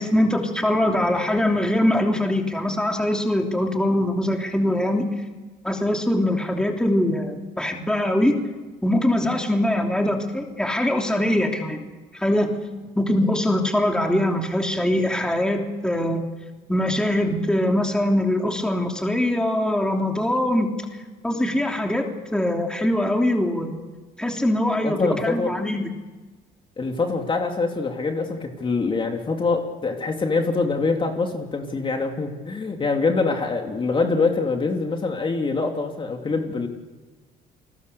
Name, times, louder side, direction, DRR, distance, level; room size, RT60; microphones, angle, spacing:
voice 1, 0.0-5.1 5.6-8.4 8.8-11.8 12.1-12.5 13.0-16.2 16.7-20.8 21.2-23.7 24.2-25.9, left 1 dB, 5° left, 2 dB, 3.1 m, -22 dB
voice 2, 24.8-25.5 26.8-36.7, left 4 dB, 30° left, 3 dB, 2.9 m, -24 dB
30.0 x 20.5 x 6.9 m, 1.2 s
cardioid pair, 110°, 17 cm